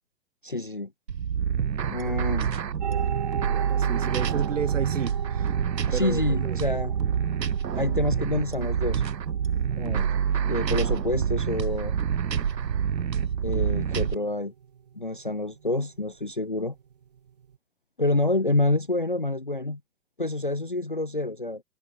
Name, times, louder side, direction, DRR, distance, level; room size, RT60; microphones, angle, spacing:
voice 1, 0.4-0.9 1.9-2.5 5.9-6.9 7.7-9.0 9.8-10.1 10.5-11.9 13.4-14.5 14.9-16.7 18.0-19.8 20.2-21.6, left 2 dB, 30° left, 0.6 m, -27 dB
sound 1, 1.1-14.2, right 7 dB, 80° right, 1.8 m, -27 dB
sound 2, 2.8-17.6, right 8 dB, 25° right, 1.5 m, -41 dB
voice 2, 3.5-5.5 5.9-6.6, right 7 dB, 50° right, 2.0 m, -33 dB
hypercardioid pair, 180°, 50 cm